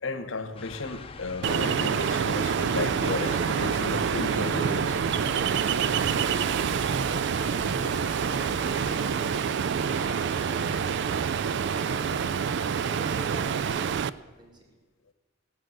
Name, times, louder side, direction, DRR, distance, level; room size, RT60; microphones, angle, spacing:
voice 1, 0.0-5.0, left 3 dB, 75° left, 1.0 m, -33 dB
sound 1, 0.6-8.9, left 3 dB, 30° left, 0.7 m, -42 dB
Ocean, 1.4-14.1, right 7 dB, 60° right, 0.4 m, -27 dB
sound 2, 2.8-13.5, right 1 dB, 45° right, 4.2 m, -45 dB
voice 2, 12.8-14.0 14.2-14.8, equal, 25° right, 1.9 m, -48 dB
17.5 x 6.4 x 7.7 m
head